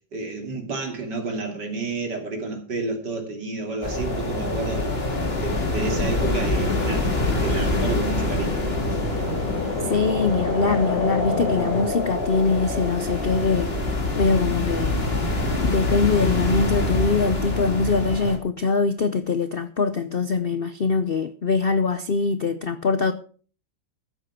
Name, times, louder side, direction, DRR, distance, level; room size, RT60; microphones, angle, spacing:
voice 1, 0.1-5.0 5.4-8.6, right 3 dB, 60° right, 3.4 m, -30 dB
sound 1, 3.8-18.4, left 2 dB, 30° left, 2.7 m, -25 dB
sound 2, 5.8-11.8, left 3 dB, 55° left, 7.7 m, -30 dB
voice 2, 9.9-13.7 14.2-15.0 15.6-23.1, left 4 dB, 80° left, 0.5 m, -23 dB
14.0 x 8.1 x 5.8 m
omnidirectional pair, 2.1 m